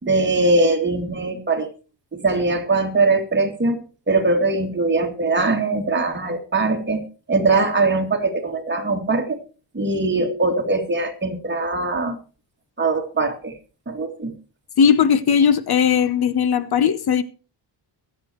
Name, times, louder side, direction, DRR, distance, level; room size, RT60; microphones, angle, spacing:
voice 1, 0.0-1.7 2.1-3.8 4.1-7.0 7.3-9.4 9.7-12.2 12.8-13.5 13.9-14.3, right 3 dB, 25° right, 2.6 m, -21 dB
voice 2, 14.8-17.2, left 7 dB, 55° left, 0.9 m, -18 dB
23.0 x 8.6 x 3.1 m
wide cardioid pair, 135°, 44 cm